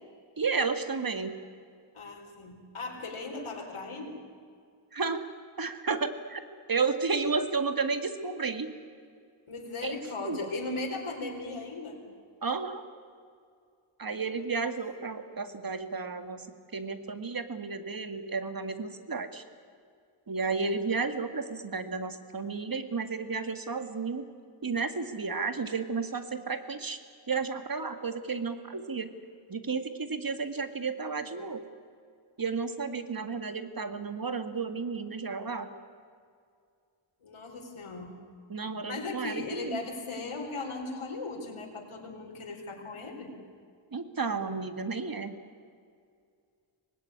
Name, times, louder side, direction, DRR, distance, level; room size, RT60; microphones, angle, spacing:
voice 1, 0.4-1.3 4.9-5.2 5.6-8.7 9.8-10.0 10.2-10.4 12.4-12.9 14.0-16.5 16.7-19.4 20.3-24.3 24.6-27.0 27.3-29.1 29.5-31.6 32.4-35.7 38.5-39.8 43.9-45.4, right 4 dB, 45° right, 9 dB, 1.9 m, -32 dB
voice 2, 1.9-4.2 9.5-12.0 37.2-38.2 38.9-43.4, left 3 dB, 85° left, 0 dB, 4.6 m, -37 dB
25.0 x 19.5 x 9.7 m, 2.2 s
wide cardioid pair, 85°, 49 cm